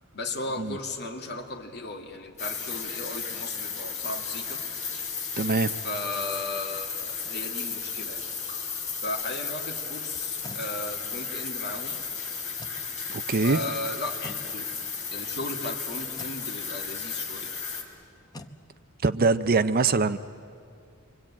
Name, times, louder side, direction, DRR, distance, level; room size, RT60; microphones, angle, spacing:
voice 1, 0.1-4.6 5.8-8.3 9.0-12.0 13.4-14.7 15.1-17.5, left 2 dB, 50° left, 2.5 m, -36 dB
sound 1, 2.4-17.8, left 5 dB, 35° left, 3.6 m, -34 dB
voice 2, 5.4-5.7 13.1-13.6 19.0-20.2, right 4 dB, 45° right, 0.6 m, -23 dB
sound 2, 10.1-10.7 12.5-12.9 14.2-14.5 16.1-16.4 18.3-18.6, left 1 dB, 20° left, 1.0 m, -43 dB
28.0 x 24.0 x 8.7 m
head